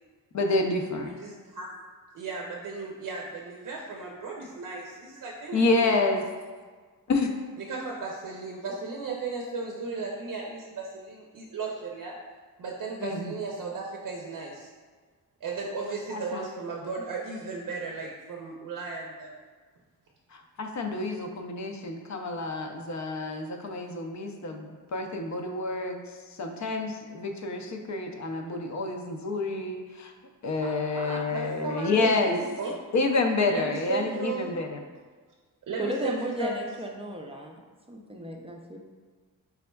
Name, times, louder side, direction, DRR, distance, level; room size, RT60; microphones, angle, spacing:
voice 1, 0.3-1.1 5.5-6.3 7.1-7.3 13.0-13.3 16.1-16.4 20.3-26.0 26.4-30.1 30.4-32.4 32.9-34.8, left 3 dB, 50° left, 4 dB, 0.5 m, -28 dB
voice 2, 1.0-1.7 2.1-5.9 7.6-12.1 12.6-14.7 15.4-19.3 30.6-32.7 33.5-34.5 35.7-36.5, right 4 dB, 65° right, -1 dB, 0.6 m, -35 dB
voice 3, 35.8-37.6 37.9-38.8, equal, 15° right, 1 dB, 0.5 m, -34 dB
4.1 x 3.4 x 2.2 m, 1.5 s
cardioid pair, 70°, 35 cm